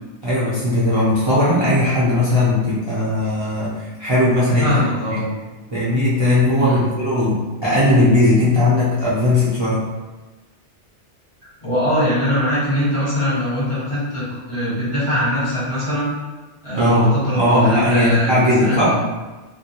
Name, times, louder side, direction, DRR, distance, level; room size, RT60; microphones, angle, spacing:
voice 1, 0.2-4.8 5.7-9.8 16.8-19.0, left 1 dB, 35° right, -10 dB, 0.5 m, -18 dB
voice 2, 4.6-5.3 6.6-6.9 11.6-16.1 16.6-19.0, equal, 30° left, -10 dB, 0.9 m, -22 dB
2.3 x 2.2 x 2.8 m, 1.2 s
omnidirectional pair, 1.2 m